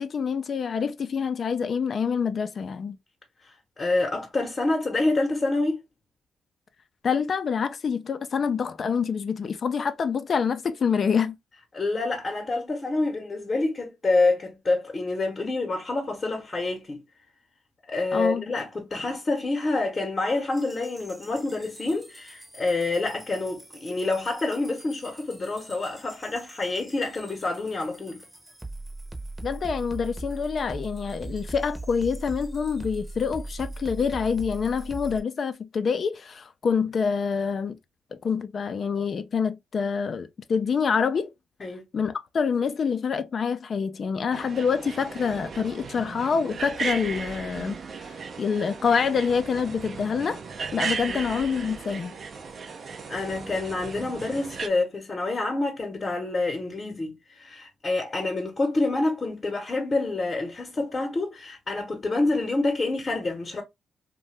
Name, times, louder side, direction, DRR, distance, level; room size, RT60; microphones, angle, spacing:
voice 1, 0.0-3.0 7.0-11.4 18.1-18.4 29.4-37.8 38.1-41.3 41.9-47.8 48.4-50.4 50.7-52.1, left 6 dB, 55° left, 0.4 m, -26 dB
voice 2, 3.4-5.8 8.3-8.4 11.7-17.0 17.9-28.2 41.6-41.8 51.1-51.2 53.1-63.6, left 2 dB, 35° left, 0.9 m, -27 dB
sound 1, 20.5-35.2, right 2 dB, 15° right, 0.7 m, -41 dB
sound 2, 44.3-54.7, right 5 dB, 55° right, 0.4 m, -36 dB
2.7 x 2.2 x 3.1 m
cardioid pair, 65°, 0 cm